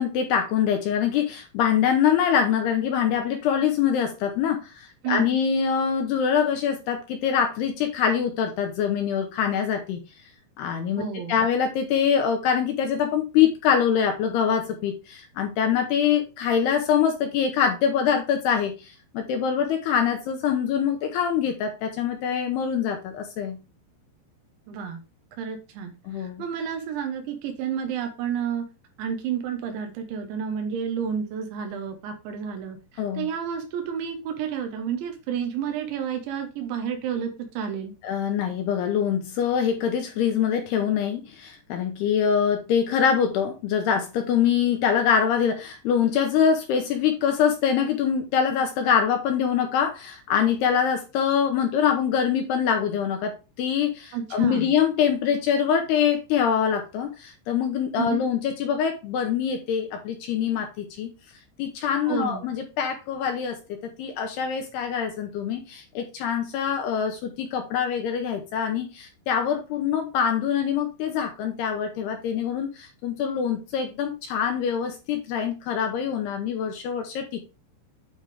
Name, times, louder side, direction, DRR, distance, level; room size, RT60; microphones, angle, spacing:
voice 1, 0.0-10.0 10.6-23.6 26.1-26.4 33.0-33.3 38.0-53.3 53.6-61.1 61.6-77.4, left 8 dB, 75° left, 4 dB, 2.6 m, -24 dB
voice 2, 5.0-5.3 11.0-11.4 24.7-25.0 25.4-25.9 26.2-28.6 29.0-37.9 54.1-54.7 58.0-58.3 62.1-62.5, right 8 dB, 90° right, 5 dB, 3.3 m, -30 dB
8.8 x 3.5 x 4.8 m, 0.30 s
omnidirectional pair, 5.2 m